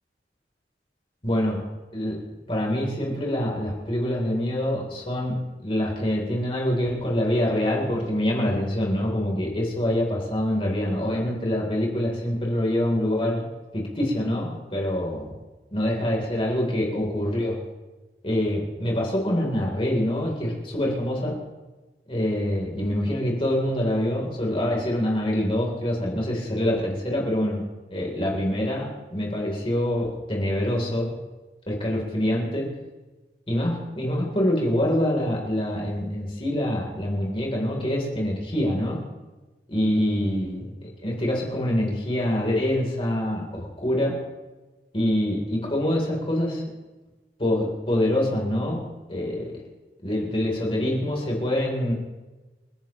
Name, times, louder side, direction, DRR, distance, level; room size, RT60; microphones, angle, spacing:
voice 1, 1.2-1.6 1.9-2.2 2.5-5.4 5.6-13.4 13.7-15.2 15.7-17.6 18.2-21.4 22.1-27.6 27.9-31.1 31.7-32.7 33.5-39.0 39.7-40.6 41.0-44.2 44.9-46.6 47.4-48.8 49.1-49.5 50.0-51.9, left 1 dB, 30° left, -2 dB, 3.6 m, -25 dB
29.0 x 10.5 x 3.1 m, 1.2 s
head